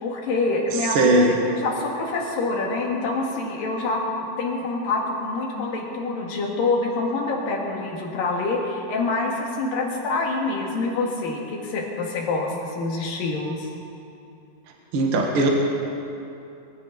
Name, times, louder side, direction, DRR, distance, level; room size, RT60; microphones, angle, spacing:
voice 1, 0.0-4.0 4.4-13.7, left 3 dB, 75° left, -1 dB, 3.6 m, -26 dB
voice 2, 0.9-1.3 14.9-15.5, right 2 dB, 50° right, 0 dB, 2.0 m, -18 dB
23.0 x 15.0 x 4.0 m, 2.7 s
omnidirectional pair, 4.1 m